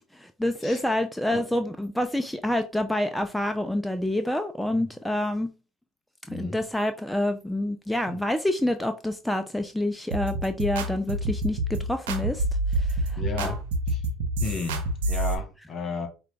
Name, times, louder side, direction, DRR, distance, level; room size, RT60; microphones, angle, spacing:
voice 1, 0.1-5.5 6.3-12.4 12.8-13.6, left 1 dB, 5° left, 0.4 m, -27 dB
sound 1, 10.1-15.3, right 1 dB, 90° right, 0.6 m, -27 dB
voice 2, 13.2-13.6 13.9-14.0 14.4-16.1, left 3 dB, 45° left, 1.3 m, -33 dB
4.9 x 2.3 x 3.3 m
supercardioid pair, 80°, 0 cm